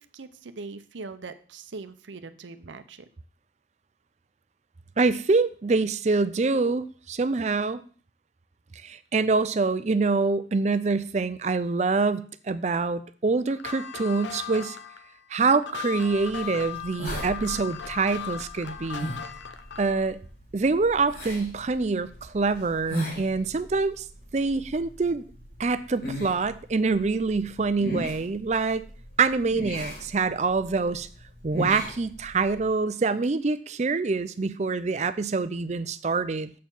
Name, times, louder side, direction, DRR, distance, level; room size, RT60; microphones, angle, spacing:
voice 1, 0.1-3.1, right 3 dB, 85° right, 11 dB, 0.7 m, -41 dB
voice 2, 5.0-7.8 8.8-14.8 15.3-19.1 19.8-20.2 20.5-24.1 24.3-25.2 25.6-28.8 29.2-31.1 31.4-36.5, right 4 dB, 40° right, 14 dB, 0.5 m, -25 dB
sound 1, 13.5-20.1, left 9 dB, 80° left, 0.8 m, -38 dB
sound 2, 16.1-32.7, right 1 dB, 55° left, 2.7 m, -38 dB
7.4 x 4.5 x 7.0 m, 0.42 s
head